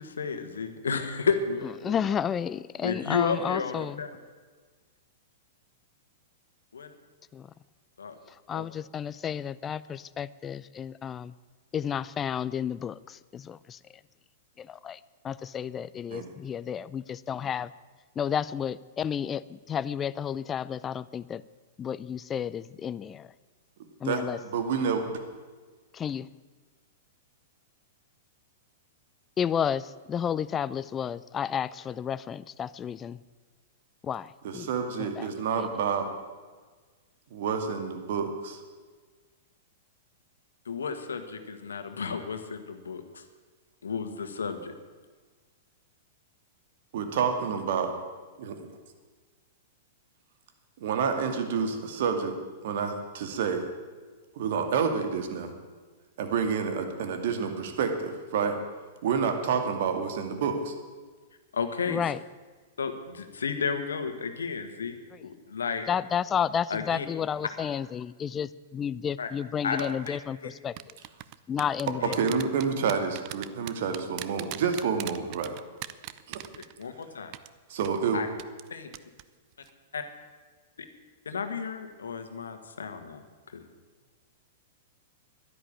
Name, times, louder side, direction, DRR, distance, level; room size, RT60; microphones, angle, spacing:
voice 1, 0.0-1.9 2.8-4.1 6.7-6.9 8.0-8.1 8.5-8.7 40.6-43.2 43.8-44.7 61.5-62.0 62.8-65.9 66.7-67.0 69.2-69.3 69.6-70.2 70.4-70.5 72.0-72.1 76.6-77.3 78.1-78.3 78.7-78.9 79.9-80.0 81.2-83.2 83.5-83.6, left 5 dB, 85° left, 7 dB, 1.6 m, -32 dB
voice 2, 1.8-4.0 7.3-7.5 8.3-11.3 11.7-13.8 14.6-15.0 15.2-17.7 18.2-21.4 21.8-23.3 24.0-24.4 25.9-26.3 29.4-33.2 34.0-34.7 35.0-35.3 35.6-35.7 61.9-62.2 65.1-65.3 65.9-70.7 71.5-72.2, left 8 dB, 25° left, 17 dB, 0.4 m, -31 dB
voice 3, 24.0-25.2 34.4-36.1 37.3-38.6 46.9-47.9 48.4-48.7 50.8-52.3 52.6-53.7 54.4-55.5 56.2-58.6 59.0-60.7 72.1-75.6 76.3-76.5 77.7-78.2, right 6 dB, 60° right, 6 dB, 2.3 m, -29 dB
sound 1, 69.8-70.1 70.8-77.0 77.3-77.5 77.8-78.0 78.4-78.7 78.9-79.2 79.5-79.7, right 17 dB, 45° right, 0.6 m, -39 dB
11.5 x 11.0 x 8.8 m, 1.4 s
hypercardioid pair, 115°, 0 cm